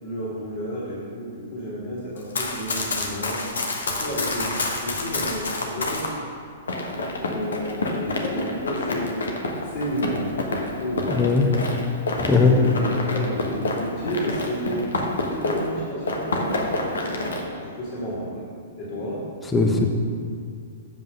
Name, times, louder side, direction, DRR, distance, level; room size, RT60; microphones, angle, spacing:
voice 1, 0.0-3.5 3.8-4.5 4.8-6.2 6.9-9.2 9.6-11.3 11.7-11.8 12.4-14.9 15.3-18.5 18.7-19.2, equal, 45° left, -7 dB, 2.4 m, -31 dB
Run, 2.2-6.1 6.7-15.8 16.0-17.4, left 2 dB, 70° left, 1.2 m, -28 dB
voice 2, 11.1-11.5 12.2-12.6 19.5-19.9, left 4 dB, 15° left, 2 dB, 1.0 m, -18 dB
7.8 x 5.4 x 6.4 m, 2.3 s
figure-of-eight pair, 110°, 0 cm